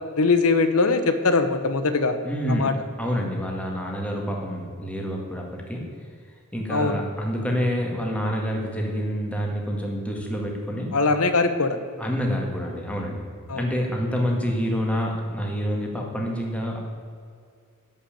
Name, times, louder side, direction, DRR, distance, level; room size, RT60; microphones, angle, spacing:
voice 1, 0.2-2.2 2.5-2.7 6.7-7.0 10.9-11.8 13.5-13.6, left 3 dB, 70° left, 9 dB, 0.9 m, -21 dB
voice 2, 2.2-2.7 3.0-5.9 6.5-10.9 12.0-13.2 13.5-16.8, equal, 5° left, 0 dB, 1.8 m, -27 dB
11.0 x 5.7 x 8.7 m, 2.2 s
head